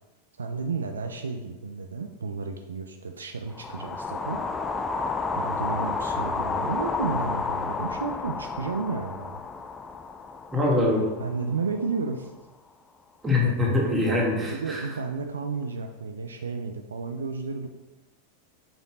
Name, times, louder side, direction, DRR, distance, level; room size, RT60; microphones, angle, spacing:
voice 1, 0.4-4.4 5.4-9.4 11.2-12.3 13.4-13.5 14.1-17.7, right 4 dB, 70° right, 5 dB, 0.5 m, -32 dB
sound 1, 3.5-11.8, left 4 dB, 15° left, 0.4 m, -31 dB
voice 2, 10.5-11.1 13.2-14.8, left 2 dB, 15° right, -3 dB, 1.9 m, -23 dB
6.0 x 5.2 x 4.1 m, 1.1 s
figure-of-eight pair, 90°, 0 cm